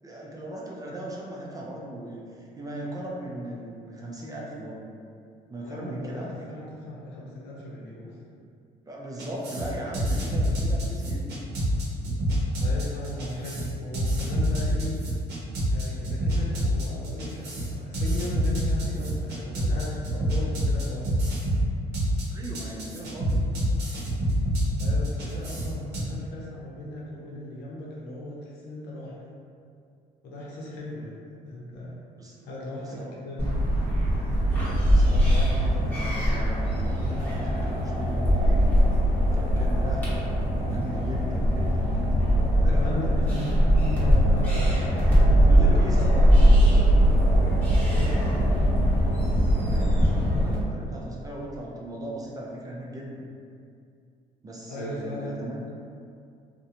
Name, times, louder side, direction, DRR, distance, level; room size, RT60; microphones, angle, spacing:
voice 1, 0.0-4.8 5.5-6.3 8.9-11.4 22.3-23.4 32.2-32.5 32.8-33.1 34.9-38.6 39.3-43.3 45.4-46.5 49.7-53.2 54.4-55.7, right 1 dB, 20° right, -3 dB, 0.4 m, -37 dB
voice 2, 5.6-8.2 12.6-15.0 15.7-21.1 24.8-29.2 30.2-31.1 31.5-31.9 32.4-33.6 42.7-46.2 46.7-47.3 47.9-48.7 54.7-55.3, left 1 dB, 85° left, -5 dB, 0.6 m, -37 dB
sound 1, 9.2-26.0, equal, 75° right, 0.7 m, -26 dB
sound 2, 33.4-50.5, equal, 10° left, 0.9 m, -21 dB
2.4 x 2.1 x 2.8 m, 2.3 s
cardioid pair, 110°, 17 cm